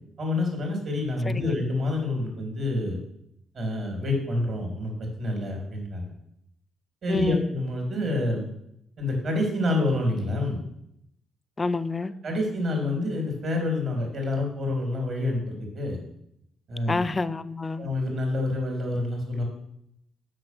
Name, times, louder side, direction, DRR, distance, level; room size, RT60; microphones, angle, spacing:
voice 1, 0.2-3.0 3.5-6.1 7.0-8.4 9.0-10.6 12.2-16.0 16.7-17.0 17.8-19.4, left 2 dB, 55° right, 3.3 m, -27 dB
voice 2, 7.1-7.5 11.6-12.1 16.9-17.9, left 3 dB, 20° left, 0.4 m, -28 dB
7.7 x 6.2 x 6.1 m
cardioid pair, 120°, 0 cm